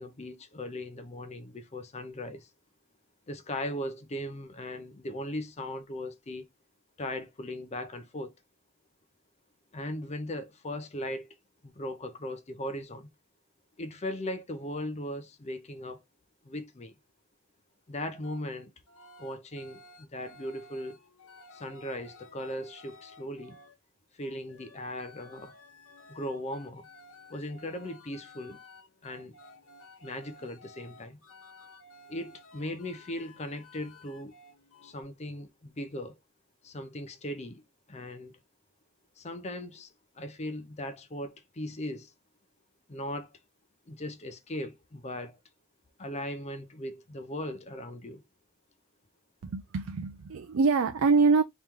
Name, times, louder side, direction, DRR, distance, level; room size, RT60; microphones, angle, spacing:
voice 1, 0.0-2.5 3.3-6.5 7.0-8.3 9.7-11.3 11.6-13.1 13.8-16.0 16.4-16.9 17.9-18.7 19.2-21.0 21.5-23.6 24.1-25.5 26.1-26.9 27.3-28.6 29.0-29.3 30.0-31.2 32.1-34.3 34.8-36.2 36.6-37.6 37.9-38.3 39.2-42.1 42.9-43.3 43.9-45.4 46.0-48.2, left 1 dB, 30° left, 0.6 m, -38 dB
sound 1, 18.2-18.4 18.9-23.8 24.2-35.0, left 2 dB, 65° left, 0.9 m, -54 dB
voice 2, 49.4-51.4, right 4 dB, 65° right, 0.4 m, -24 dB
3.2 x 3.0 x 3.6 m
head